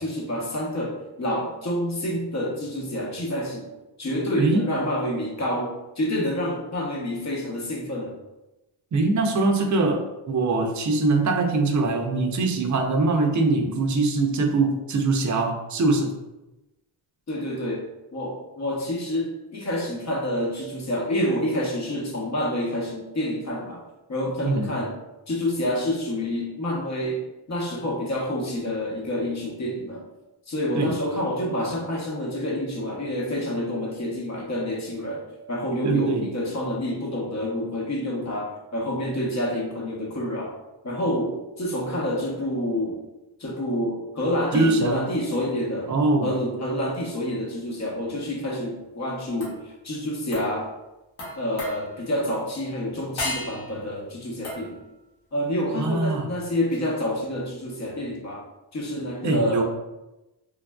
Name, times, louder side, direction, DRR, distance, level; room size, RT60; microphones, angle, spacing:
voice 1, 0.0-3.7 4.0-8.2 17.3-23.8 24.1-24.9 25.3-30.0 30.5-40.5 40.8-43.0 43.4-45.9 46.2-50.7 51.4-54.8 55.3-58.5 58.7-59.6, left 1 dB, 35° left, -1 dB, 0.9 m, -28 dB
voice 2, 8.9-16.1 24.4-24.7 30.8-30.9 35.8-36.3 44.5-45.0 45.9-46.3 55.8-56.3 59.2-59.6, right 3 dB, 40° right, 3 dB, 0.6 m, -22 dB
sound 1, 49.4-49.7 50.3-50.6 51.2-52.1 53.2-53.8 54.4-54.9 56.7-56.8, left 1 dB, 80° left, 1.1 m, -34 dB
3.2 x 2.4 x 2.3 m, 0.99 s
cardioid pair, 65°, 49 cm